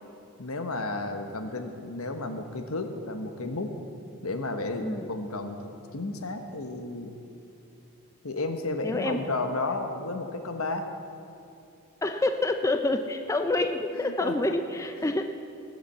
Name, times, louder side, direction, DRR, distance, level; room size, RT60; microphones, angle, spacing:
voice 1, 0.4-3.7 4.2-5.6 5.9-7.2 8.2-10.9 13.9-14.5 15.0-15.1, left 2 dB, 70° left, 6 dB, 1.2 m, -32 dB
voice 2, 4.8-5.1 8.8-9.2 12.0-15.2, left 2 dB, 15° left, 6 dB, 0.4 m, -27 dB
19.5 x 7.4 x 7.3 m, 2.7 s
head